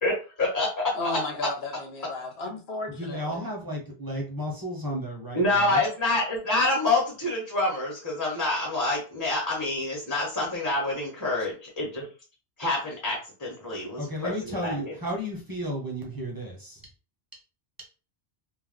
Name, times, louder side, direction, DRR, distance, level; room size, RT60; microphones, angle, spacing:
voice 1, 0.4-1.1 5.3-12.1 12.6-14.9, left 2 dB, 20° left, 0.9 m, -27 dB
voice 2, 0.9-3.4, left 3 dB, 65° left, 0.9 m, -34 dB
voice 3, 2.9-5.8 11.4-11.5 14.0-16.8 17.3-17.4 17.8-17.9, equal, 25° right, 0.6 m, -33 dB
2.5 x 2.1 x 3.5 m
omnidirectional pair, 1.2 m